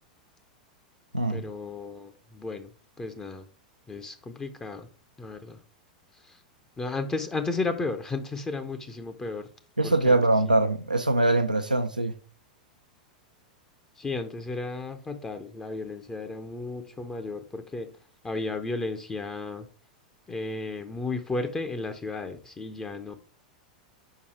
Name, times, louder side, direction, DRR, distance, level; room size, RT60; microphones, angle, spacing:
voice 1, 1.3-2.7 3.0-3.5 3.9-4.9 5.2-5.6 6.1-6.4 6.8-9.5 9.8-10.2 14.0-17.9 18.2-19.7 20.3-23.2, left 3 dB, 15° left, 0.7 m, -34 dB
voice 2, 9.8-12.1, right 2 dB, 90° right, 0.6 m, -23 dB
5.3 x 4.8 x 4.8 m
figure-of-eight pair, 90°, 4 cm